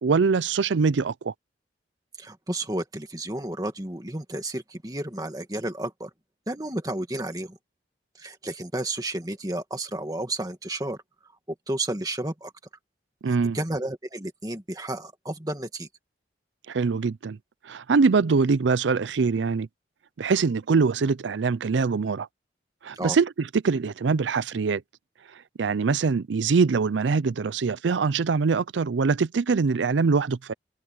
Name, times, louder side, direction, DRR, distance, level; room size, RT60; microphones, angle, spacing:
voice 1, 0.0-1.3 13.2-13.6 16.7-17.4 17.6-19.7 20.2-22.3 22.8-24.8 25.6-30.5, right 4 dB, 90° right, 0.5 m, -23 dB
voice 2, 2.2-6.1 6.5-7.6 8.2-11.0 11.7-12.5 13.3-15.9 22.9-23.2, right 1 dB, 20° right, 2.0 m, -32 dB
head